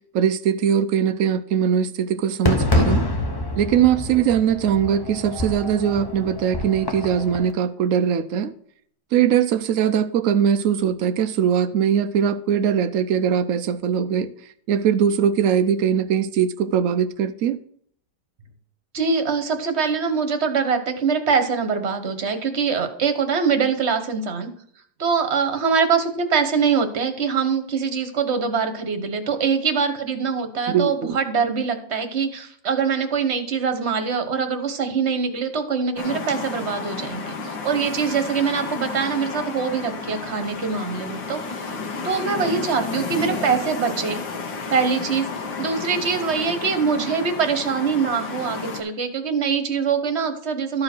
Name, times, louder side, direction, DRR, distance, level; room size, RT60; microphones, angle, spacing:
voice 1, 0.1-3.0 3.6-8.5 9.1-14.3 14.7-17.6 30.7-31.2, right 8 dB, 90° right, 0.7 m, -21 dB
Fireworks, 2.4-7.5, left 1 dB, 20° left, 0.6 m, -26 dB
voice 2, 18.9-24.5 25.0-41.8 42.0-44.2 44.5-45.3 45.6-50.8, right 5 dB, 40° right, 1.3 m, -23 dB
sound 1, 36.0-48.8, left 4 dB, 70° left, 2.1 m, -32 dB
13.0 x 4.9 x 6.0 m
omnidirectional pair, 2.1 m